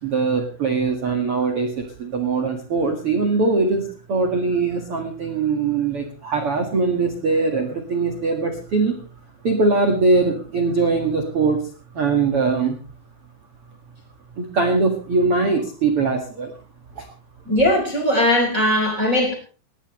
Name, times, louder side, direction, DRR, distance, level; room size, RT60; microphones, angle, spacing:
voice 1, 0.0-9.0 9.4-11.6 11.9-12.8 14.4-16.5 17.0-17.1, right 4 dB, 65° right, 5 dB, 1.3 m, -21 dB
voice 2, 17.5-19.3, left 1 dB, 20° right, 2 dB, 3.6 m, -19 dB
20.0 x 17.0 x 3.2 m, 0.37 s
omnidirectional pair, 5.8 m